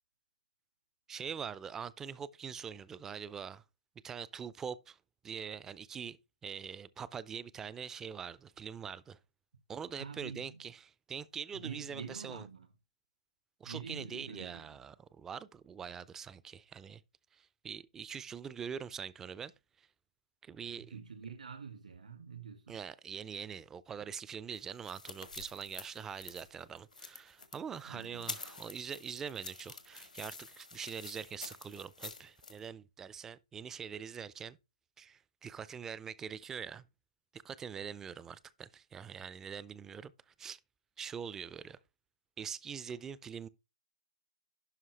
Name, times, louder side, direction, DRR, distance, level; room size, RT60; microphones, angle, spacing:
voice 1, 1.1-3.6 4.0-5.0 5.2-9.2 9.7-12.5 13.6-17.0 17.3-19.5 19.8-19.9 20.4-21.0 22.7-34.6 35.0-36.8 37.3-40.6 41.0-41.8 42.4-43.5, right 7 dB, 10° right, 0.3 m, -44 dB
voice 2, 10.0-10.6 11.5-12.7 13.6-14.8 20.6-22.8 27.9-28.3, right 6 dB, 75° right, 2.0 m, -46 dB
sound 1, 24.5-32.6, left 4 dB, 90° left, 1.6 m, -48 dB
11.5 x 4.6 x 3.2 m
figure-of-eight pair, 140°, 4 cm